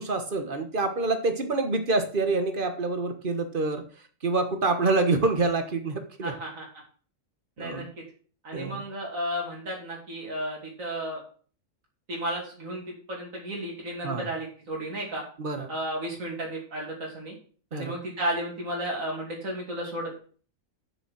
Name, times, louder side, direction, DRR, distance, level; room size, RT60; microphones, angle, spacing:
voice 1, 0.0-3.8 4.2-6.3 7.6-7.9 8.5-8.8 14.0-14.3 15.4-15.7 17.7-18.0, right 3 dB, 40° right, 7 dB, 1.6 m, -26 dB
voice 2, 6.2-6.7 7.6-7.8 8.4-11.2 12.1-15.2 15.7-17.3 17.7-20.2, right 1 dB, 85° right, -2 dB, 3.2 m, -33 dB
7.2 x 6.9 x 7.5 m, 0.43 s
omnidirectional pair, 1.4 m